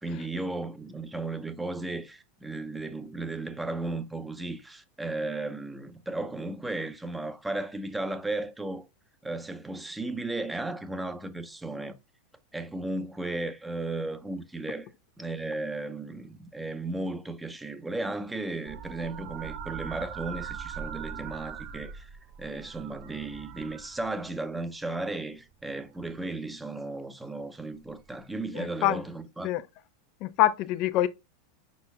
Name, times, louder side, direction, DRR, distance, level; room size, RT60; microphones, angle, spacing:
voice 1, 0.0-8.9 9.2-12.0 12.5-14.9 15.2-22.1 22.4-29.5, right 2 dB, 10° right, 0.6 m, -35 dB
sound 1, 18.7-24.5 25.7-26.2 27.9-28.1, right 8 dB, 50° right, 0.6 m, -41 dB
voice 2, 28.5-29.0 29.4-29.6 30.2-31.1, left 14 dB, 50° left, 0.4 m, -25 dB
5.3 x 4.1 x 2.2 m
hypercardioid pair, 90°, 0 cm